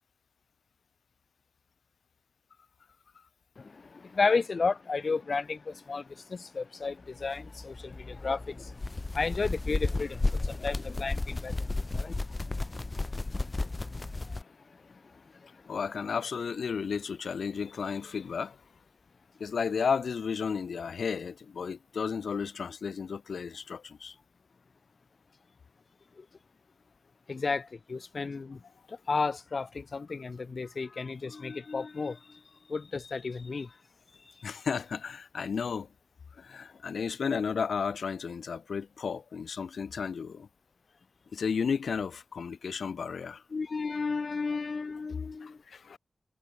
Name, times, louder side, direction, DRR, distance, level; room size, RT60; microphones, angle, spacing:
voice 1, 3.6-6.0 6.3-8.7 9.1-12.2 12.5-12.9 13.3-13.4 27.3-28.6 28.9-32.2 32.7-33.7 43.5-45.6, left 4 dB, 45° left, 3.3 m, -33 dB
sound 1, 7.2-14.4, left 2 dB, 25° left, 2.3 m, -33 dB
voice 2, 15.7-18.6 19.4-24.1 34.4-35.9 36.4-40.5 41.3-43.4 45.4-46.0, left 6 dB, 70° left, 3.1 m, -33 dB
wide cardioid pair, 115°, 0 cm